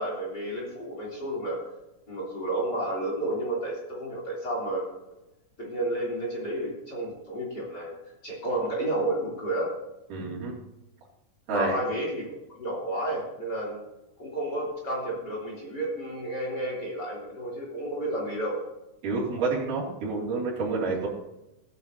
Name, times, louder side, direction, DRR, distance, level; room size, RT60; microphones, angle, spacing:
voice 1, 0.0-1.6 2.1-4.9 5.6-7.9 8.2-9.7 11.5-13.8 14.2-18.6, right 1 dB, 30° left, -3 dB, 3.5 m, -31 dB
voice 2, 10.1-10.6 11.5-11.8 19.0-21.1, right 3 dB, 70° right, -5 dB, 4.2 m, -28 dB
16.0 x 9.5 x 2.8 m, 0.93 s
omnidirectional pair, 3.9 m